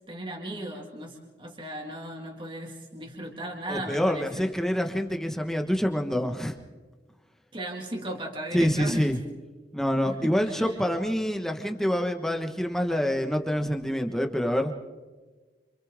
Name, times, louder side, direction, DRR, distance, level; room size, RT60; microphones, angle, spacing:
voice 1, 0.1-4.5 7.5-9.1 10.1-10.7, right 1 dB, 30° right, 0 dB, 2.3 m, -36 dB
voice 2, 3.7-6.6 8.5-9.2 9.7-14.7, equal, 5° left, 4 dB, 1.5 m, -26 dB
27.5 x 27.0 x 3.8 m, 1.3 s
head